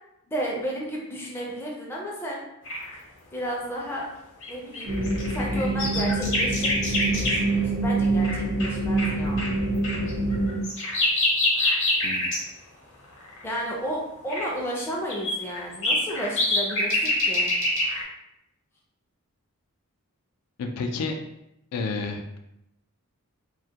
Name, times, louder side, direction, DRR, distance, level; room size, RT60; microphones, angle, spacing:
voice 1, 0.3-2.4 3.3-4.1 4.5-5.0 5.3-9.4 13.4-17.5, equal, 10° left, -3 dB, 0.4 m, -33 dB
sound 1, 2.6-2.9 4.4-7.6 8.2-8.3 8.6-8.7 9.0-9.1 9.4-9.5 9.8-12.4 13.2-13.4 14.3-14.4 15.1-18.0, left 1 dB, 55° left, 0.7 m, -26 dB
sound 2, 4.9-10.6, right 2 dB, 75° right, 0.6 m, -26 dB
voice 2, 20.6-21.1 21.7-22.4, left 4 dB, 90° left, 4 dB, 0.4 m, -30 dB
2.2 x 2.1 x 2.7 m, 0.83 s
head